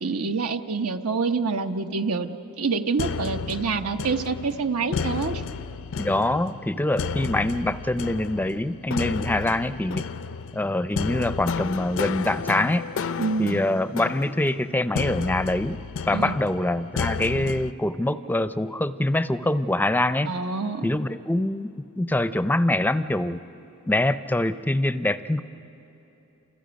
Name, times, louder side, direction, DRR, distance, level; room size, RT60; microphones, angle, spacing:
voice 1, 0.0-5.4 13.2-13.6 16.1-16.4 20.3-20.9, right 4 dB, 90° right, 7 dB, 1.0 m, -27 dB
sound 1, 3.0-17.7, left 5 dB, 60° left, 0.4 m, -32 dB
voice 2, 6.0-10.0 10.5-12.9 13.4-15.8 16.1-20.3 20.8-23.4 23.9-25.4, left 1 dB, 10° left, 12 dB, 0.5 m, -24 dB
29.0 x 27.5 x 5.2 m, 2.9 s
head